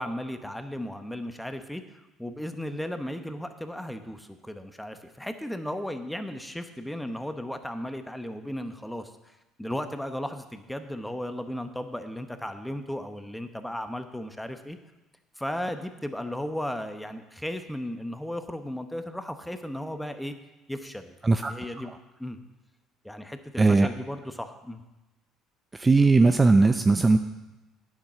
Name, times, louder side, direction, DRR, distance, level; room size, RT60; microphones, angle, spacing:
voice 1, 0.0-14.8 15.4-20.3 20.7-21.9 22.2-22.4 23.0-24.8, left 1 dB, 5° left, 8 dB, 1.0 m, -35 dB
voice 2, 23.6-23.9 25.7-27.2, right 3 dB, 20° right, 8 dB, 0.5 m, -19 dB
9.6 x 7.4 x 5.7 m, 1.0 s
supercardioid pair, 75°, 0 cm